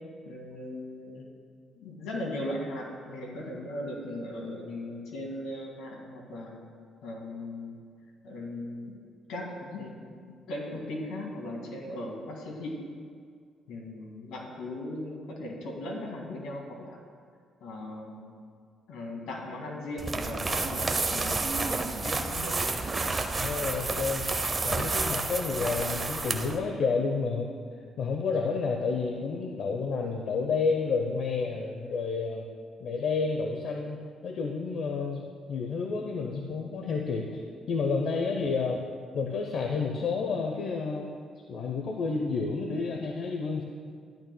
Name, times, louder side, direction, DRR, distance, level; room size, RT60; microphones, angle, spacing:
voice 1, 0.3-1.3 1.7-6.6 7.0-7.8 8.2-9.0 9.3-9.9 10.5-12.9 13.7-17.0 17.6-18.3 18.9-21.7 22.0-22.6, left 1 dB, 90° left, -1 dB, 2.0 m, -38 dB
sound 1, 20.0-26.6, right 3 dB, 30° right, 0.7 m, -30 dB
voice 2, 23.3-24.3 24.6-27.5 28.0-32.4 32.8-34.0 34.2-38.9 39.1-41.1 41.5-43.6, left 4 dB, 70° left, 2 dB, 0.7 m, -30 dB
13.0 x 10.5 x 2.2 m, 2.1 s
cardioid pair, 90°, 0 cm